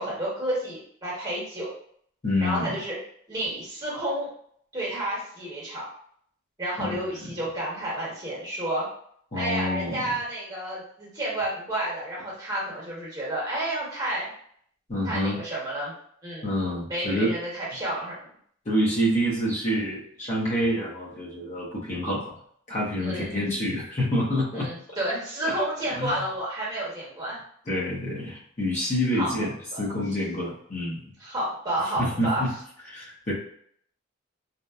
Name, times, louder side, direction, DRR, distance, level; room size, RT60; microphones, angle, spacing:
voice 1, 0.0-1.7 2.4-3.0 3.3-4.3 4.7-5.9 6.6-8.9 9.3-14.3 15.0-15.9 16.2-16.6 16.9-18.1 23.0-23.4 24.5-27.4 29.1-29.8 31.2-32.5, right 1 dB, 20° right, -6 dB, 1.1 m, -30 dB
voice 2, 2.2-2.7 6.8-7.0 9.3-10.1 14.9-15.4 16.4-17.3 18.7-22.3 22.7-24.7 25.4-25.6 26.0-26.2 27.7-29.5 29.8-31.0 32.0-32.5 32.9-33.3, equal, 40° left, -6 dB, 0.7 m, -27 dB
2.8 x 2.1 x 2.3 m, 0.63 s
head